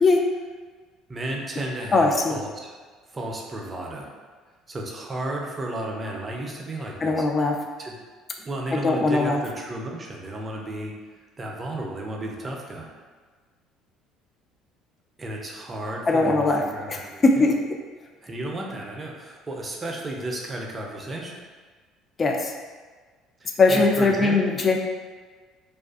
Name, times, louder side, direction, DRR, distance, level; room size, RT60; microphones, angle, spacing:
voice 1, 1.1-2.7 3.1-4.1 4.7-7.3 7.8-8.0 8.4-10.9 11.4-12.9 15.2-17.5 18.2-21.4 23.4-24.4, right 1 dB, 30° right, 0 dB, 0.5 m, -33 dB
voice 2, 1.9-2.4 7.0-7.5 8.8-9.4 16.1-16.6 16.9-17.0 17.2-17.6 22.2-22.5 23.6-24.8, left 3 dB, 35° left, 2 dB, 0.3 m, -20 dB
2.4 x 2.4 x 2.4 m, 1.4 s
supercardioid pair, 80°, 0 cm